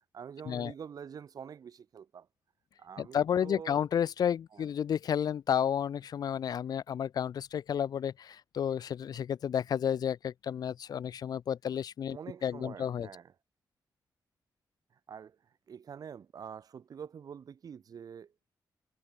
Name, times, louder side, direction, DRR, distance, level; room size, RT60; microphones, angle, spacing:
voice 1, 0.1-2.3 2.8-3.8 4.5-4.6 12.1-13.3 15.1-15.4 15.7-18.5, right 7 dB, 60° right, 1.9 m, -46 dB
voice 2, 3.0-13.1, left 8 dB, 65° left, 0.5 m, -31 dB
wide cardioid pair, 150°, 7 cm